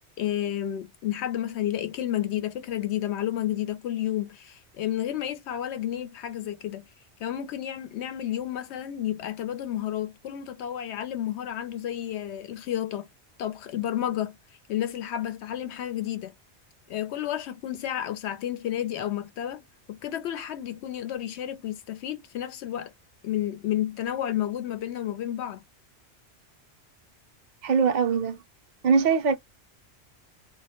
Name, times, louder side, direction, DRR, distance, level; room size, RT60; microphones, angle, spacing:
voice 1, 0.2-6.9 7.2-13.1 13.4-14.4 14.7-16.3 16.9-19.6 19.9-22.9 23.2-25.6, left 11 dB, 80° left, 0.8 m, -31 dB
voice 2, 27.6-28.4 28.8-29.4, right 5 dB, 55° right, 0.6 m, -22 dB
2.2 x 2.0 x 2.8 m
omnidirectional pair, 1.1 m